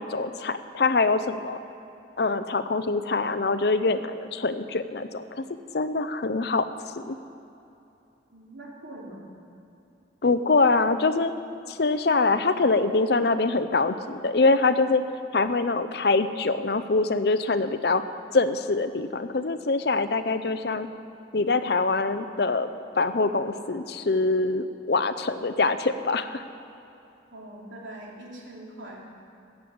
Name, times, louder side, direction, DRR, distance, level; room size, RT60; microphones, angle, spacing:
voice 1, 0.0-1.6 2.2-5.4 5.7-6.7 7.0-7.2 10.2-11.3 11.7-15.0 15.3-18.0 18.3-20.9 21.3-22.7 23.0-26.4, left 3 dB, 55° left, 11 dB, 0.6 m, -24 dB
voice 2, 8.3-9.3 27.3-29.0, right 1 dB, 90° right, -3 dB, 3.0 m, -42 dB
14.0 x 7.5 x 8.7 m, 2.8 s
head